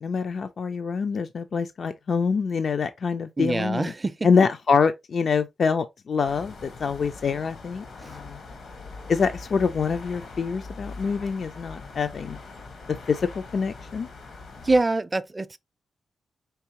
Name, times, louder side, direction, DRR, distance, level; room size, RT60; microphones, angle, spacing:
voice 1, 0.0-3.9 4.2-8.4 9.1-12.4 13.1-13.3 13.5-14.1, left 5 dB, 60° left, 0.3 m, -25 dB
voice 2, 3.4-4.3 8.0-8.2 14.6-15.6, right 2 dB, 25° right, 0.4 m, -25 dB
sound 1, 6.2-14.8, left 3 dB, 80° left, 1.0 m, -42 dB
4.6 x 3.0 x 2.8 m
cardioid pair, 70°, 0 cm